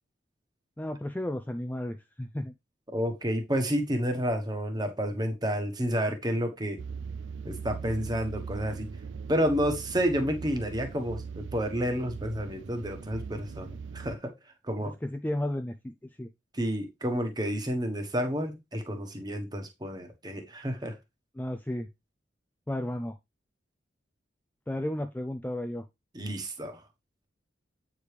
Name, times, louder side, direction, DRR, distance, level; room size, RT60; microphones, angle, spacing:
voice 1, 0.8-2.5 14.8-16.3 21.3-21.9 22.7-23.2 24.7-25.9, left 1 dB, 10° left, 7 dB, 0.4 m, -33 dB
voice 2, 2.9-6.8 7.4-8.9 9.3-14.3 14.7-14.9 16.5-21.0 26.1-26.8, equal, 20° right, 5 dB, 1.2 m, -30 dB
sound 1, 6.8-14.2, right 5 dB, 75° right, 0.4 m, -40 dB
8.4 x 4.9 x 3.3 m, 0.21 s
head